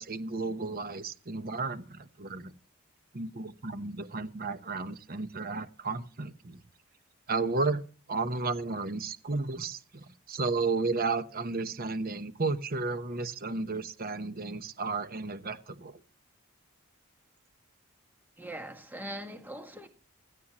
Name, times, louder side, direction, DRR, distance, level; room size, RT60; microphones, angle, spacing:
voice 1, 0.0-2.5 3.1-6.6 7.3-7.8 8.1-16.0, right 3 dB, 45° right, 1.0 m, -33 dB
voice 2, 18.4-19.9, right 1 dB, 10° right, 1.7 m, -41 dB
17.5 x 14.0 x 3.0 m
head